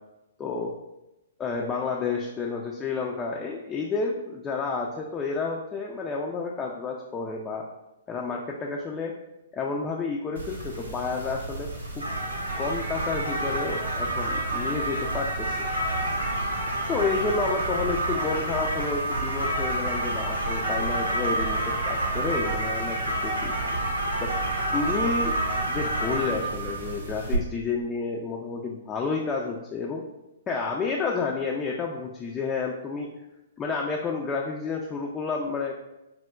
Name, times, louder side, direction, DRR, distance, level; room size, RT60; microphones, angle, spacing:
voice 1, 0.4-0.7 1.4-7.7 8.1-9.1 9.5-11.7 12.0-12.1 12.6-15.6 16.9-23.8 24.2-24.3 24.7-25.4 25.7-30.0 30.5-33.2 33.6-35.8, left 4 dB, 20° left, -1 dB, 0.3 m, -30 dB
sound 1, 10.4-27.4, right 1 dB, 90° right, 0.6 m, -28 dB
4.4 x 2.0 x 2.2 m, 0.94 s
figure-of-eight pair, 120°, 0 cm